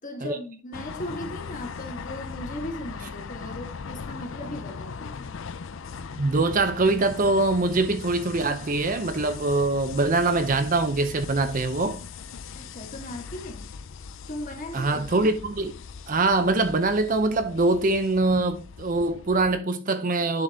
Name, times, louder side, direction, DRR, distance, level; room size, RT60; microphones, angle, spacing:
voice 1, 0.0-5.4 12.5-13.7 14.3-15.2, left 1 dB, 35° left, 1.6 m, -38 dB
sound 1, 0.7-19.6, left 5 dB, 55° left, 0.4 m, -39 dB
voice 2, 6.2-12.0 14.7-15.7 16.1-20.4, right 2 dB, 35° right, 0.6 m, -23 dB
10.5 x 4.1 x 3.5 m
head